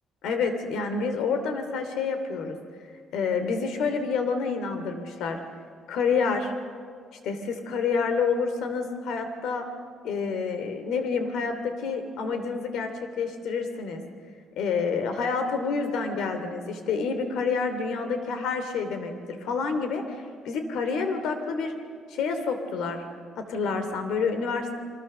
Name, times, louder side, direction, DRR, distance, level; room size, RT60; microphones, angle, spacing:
voice 1, 0.2-2.6 3.1-5.4 5.9-6.5 7.2-9.7 10.0-14.0 14.6-21.7 22.1-23.0 23.4-24.8, left 5 dB, 80° left, 7 dB, 2.9 m, -28 dB
28.0 x 25.5 x 6.8 m, 2.1 s
cardioid pair, 150°, 0 cm